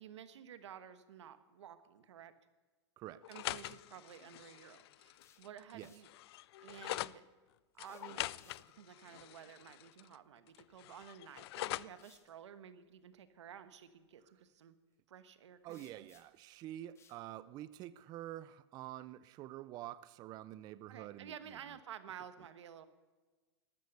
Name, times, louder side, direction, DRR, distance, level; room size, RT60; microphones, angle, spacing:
voice 1, 0.0-2.3 3.3-6.1 6.6-7.2 7.7-14.7 15.1-16.1 20.9-22.9, right 9 dB, 85° right, 11 dB, 1.2 m, -53 dB
sound 1, 3.2-7.2 7.8-10.2 10.5-12.0, left 16 dB, 65° left, 0.4 m, -44 dB
sound 2, 5.1-6.1 7.7-8.9 11.0-11.1 11.9-12.3 15.7-16.5 16.9-17.2, left 7 dB, 20° left, 1.3 m, -67 dB
voice 2, 15.6-21.6, right 14 dB, 30° right, 16 dB, 0.4 m, -47 dB
13.0 x 12.5 x 6.7 m, 1.3 s
supercardioid pair, 140°, 15 cm